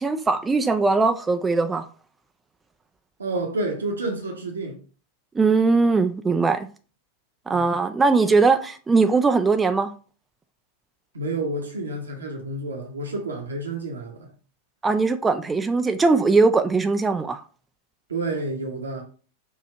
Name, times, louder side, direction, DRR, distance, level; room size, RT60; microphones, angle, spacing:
voice 1, 0.0-1.9 5.4-6.7 7.5-9.9 14.8-17.4, right 4 dB, 15° right, 0.3 m, -20 dB
voice 2, 3.2-4.8 7.5-7.7 11.1-14.3 18.1-19.0, right 2 dB, 70° right, 0.9 m, -29 dB
4.8 x 2.7 x 3.3 m
figure-of-eight pair, 90°, 0 cm